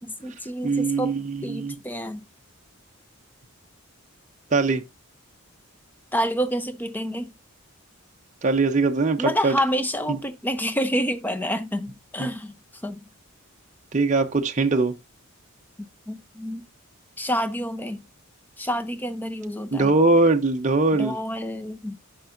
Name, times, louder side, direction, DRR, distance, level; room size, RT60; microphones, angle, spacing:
voice 1, 0.0-1.2 1.4-2.3 6.1-7.3 9.2-13.0 15.8-16.6 17.2-18.0 18.6-19.9 21.0-22.0, equal, 10° left, 0.6 m, -28 dB
voice 2, 0.6-1.7 4.5-4.8 8.4-9.5 12.2-12.3 13.9-14.9 19.7-21.1, right 3 dB, 35° right, 0.6 m, -21 dB
10.0 x 5.7 x 2.5 m
head